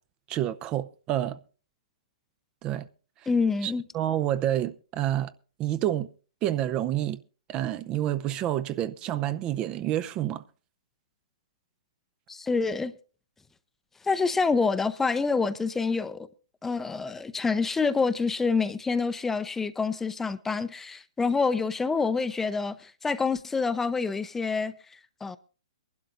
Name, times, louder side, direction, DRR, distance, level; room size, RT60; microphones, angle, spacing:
voice 1, 0.3-1.4 2.6-2.9 3.6-5.3 5.6-6.1 6.4-7.2 7.5-10.4, right 12 dB, 30° right, 0.6 m, -28 dB
voice 2, 3.3-3.8 12.3-12.9 14.0-16.3 16.6-24.7 25.2-25.4, left 4 dB, 10° left, 0.6 m, -27 dB
23.5 x 12.0 x 2.5 m
hypercardioid pair, 120°, 3 cm